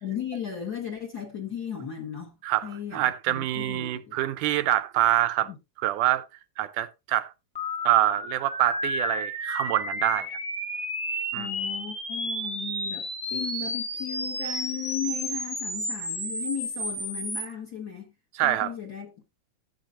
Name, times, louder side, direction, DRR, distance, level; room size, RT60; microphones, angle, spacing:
voice 1, 0.0-2.4 2.6-4.2 5.4-5.6 11.3-18.1 18.4-19.1, left 8 dB, 40° left, 1.5 m, -36 dB
voice 2, 2.4-5.5 5.8-6.3 6.6-7.3 7.9-10.4 11.3-11.5 18.4-18.7, right 14 dB, 85° right, 2.2 m, -25 dB
sound 1, 7.5-17.4, equal, 5° left, 1.0 m, -32 dB
13.5 x 8.5 x 2.5 m
omnidirectional pair, 3.6 m